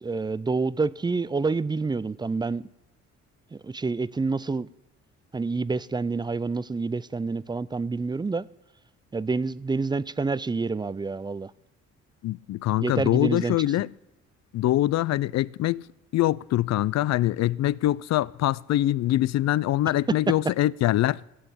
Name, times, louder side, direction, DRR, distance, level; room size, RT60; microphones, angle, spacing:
voice 1, 0.0-2.6 3.5-4.7 5.3-8.5 9.1-11.5 12.8-13.6, right 4 dB, 15° right, 0.4 m, -28 dB
voice 2, 12.2-13.9 14.5-15.8 16.1-21.2, left 14 dB, 60° left, 0.5 m, -24 dB
16.0 x 7.8 x 8.3 m
cardioid pair, 90°, 30 cm